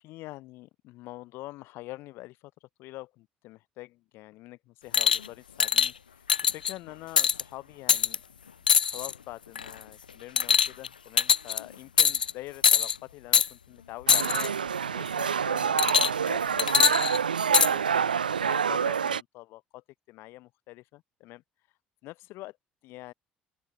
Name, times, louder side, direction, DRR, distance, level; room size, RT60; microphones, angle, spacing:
voice 1, 0.0-8.2 8.8-14.6 14.8-17.1 17.6-21.4 22.0-22.6 22.8-23.1, left 19 dB, 55° left, 3.1 m, -45 dB
sound 1, 4.9-5.3 5.6-5.9 6.3-6.7 7.2-7.4 7.9-8.2 8.7-9.1 9.6-9.8 10.4-10.9 11.2-11.6 12.0-12.3 12.6-13.0 13.3-13.5 14.1-14.5 15.8-16.3 16.6-17.7 18.5-18.6, left 7 dB, 80° left, 0.4 m, -22 dB
sound 2, 14.1-19.2, right 7 dB, 80° right, 0.9 m, -27 dB
figure-of-eight pair, 55°, 5 cm